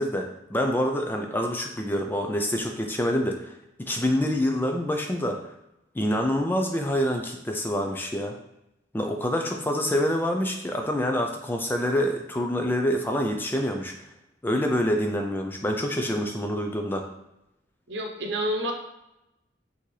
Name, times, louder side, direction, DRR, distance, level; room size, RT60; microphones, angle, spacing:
voice 1, 0.0-5.4 5.9-8.4 8.9-13.9 14.4-17.0, equal, 10° left, 3 dB, 0.3 m, -26 dB
voice 2, 17.9-18.7, equal, 60° right, 2 dB, 0.8 m, -28 dB
5.9 x 2.7 x 3.2 m, 0.88 s
head